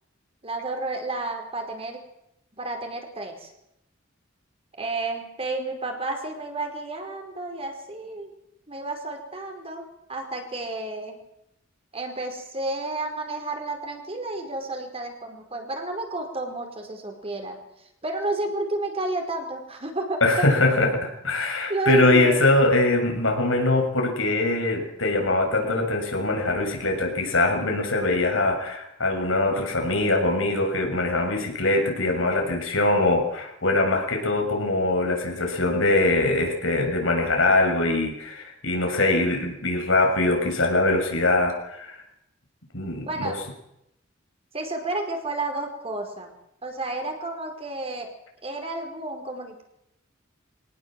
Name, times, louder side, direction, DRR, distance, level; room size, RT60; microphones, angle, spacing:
voice 1, 0.4-2.0 2.5-3.5 4.8-8.3 8.7-9.8 10.1-11.2 11.9-17.6 18.0-20.2 21.7-22.4 43.0-43.4 44.5-46.3 46.6-48.1 48.4-49.6, right 2 dB, 30° right, 4 dB, 4.7 m, -31 dB
voice 2, 20.2-42.0 42.7-43.3, left 2 dB, 85° left, 2 dB, 6.9 m, -22 dB
24.0 x 18.5 x 7.7 m, 0.81 s
head